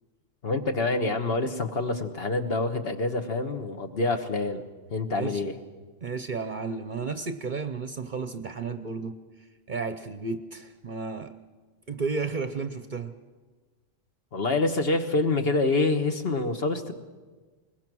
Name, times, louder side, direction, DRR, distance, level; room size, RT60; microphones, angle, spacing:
voice 1, 0.4-4.6 4.9-5.5 14.3-16.9, left 3 dB, 50° left, 6 dB, 1.4 m, -26 dB
voice 2, 5.1-5.5 6.0-11.3 11.9-13.1, right 4 dB, 45° right, 9 dB, 0.8 m, -33 dB
21.5 x 20.5 x 6.2 m, 1.4 s
omnidirectional pair, 1.3 m